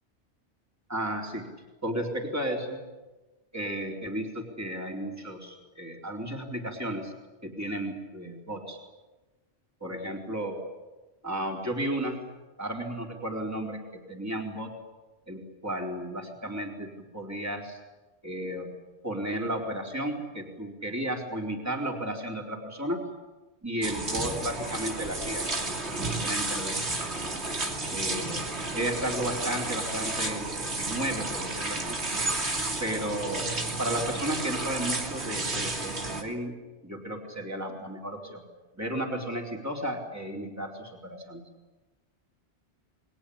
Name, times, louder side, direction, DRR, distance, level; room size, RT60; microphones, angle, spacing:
voice 1, 0.9-1.5 1.8-2.8 3.5-7.1 7.4-8.8 9.8-10.6 11.2-12.2 12.6-14.7 15.3-17.8 18.2-18.7 19.0-23.0 23.6-27.0 27.9-28.4 28.7-32.0 32.8-38.4 38.7-41.4, right 1 dB, 15° right, 1 dB, 4.1 m, -33 dB
sound 1, 23.8-36.2, right 2 dB, 75° right, 3.4 m, -32 dB
29.5 x 22.0 x 8.7 m, 1.2 s
omnidirectional pair, 1.1 m